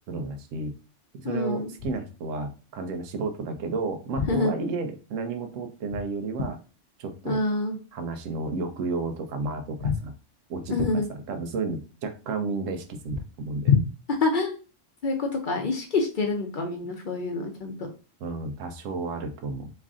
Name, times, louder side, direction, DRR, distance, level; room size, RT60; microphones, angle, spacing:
voice 1, 0.1-0.8 1.2-6.6 7.0-7.4 7.9-10.1 10.5-11.0 11.3-13.8 18.2-19.7, right 3 dB, 90° right, 7 dB, 1.0 m, -32 dB
voice 2, 1.2-1.7 4.3-4.5 7.3-7.8 9.8-9.9 10.7-11.1 13.7-13.8 14.2-14.5 15.0-17.9, left 3 dB, 55° left, 3 dB, 0.6 m, -26 dB
3.1 x 2.5 x 3.6 m, 0.33 s
omnidirectional pair, 1.3 m